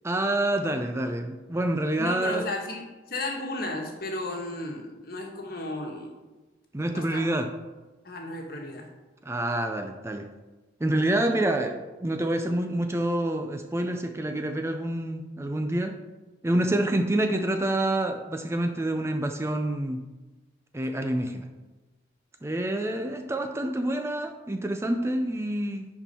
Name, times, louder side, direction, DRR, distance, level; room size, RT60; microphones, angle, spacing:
voice 1, 0.0-2.5 6.7-7.5 9.2-10.3 10.8-16.0 16.4-20.0 20.7-21.5 22.4-25.9, right 1 dB, 15° right, 6 dB, 0.4 m, -27 dB
voice 2, 2.0-6.1 6.9-7.3 8.0-8.9, left 2 dB, 50° left, 1 dB, 1.4 m, -34 dB
10.5 x 4.6 x 4.2 m, 1.2 s
head